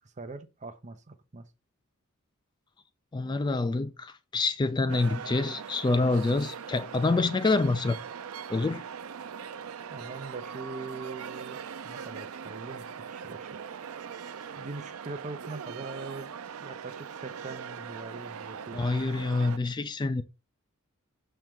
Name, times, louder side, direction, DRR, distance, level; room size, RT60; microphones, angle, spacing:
voice 1, 0.2-1.4 9.9-11.6 11.8-13.6 14.6-16.3 16.6-18.8, right 3 dB, 35° right, 0.7 m, -42 dB
voice 2, 3.1-8.0 8.5-8.8 18.7-20.2, left 3 dB, 20° left, 0.3 m, -27 dB
sound 1, 4.9-19.6, right 7 dB, 85° right, 0.5 m, -41 dB
6.5 x 4.5 x 3.6 m
head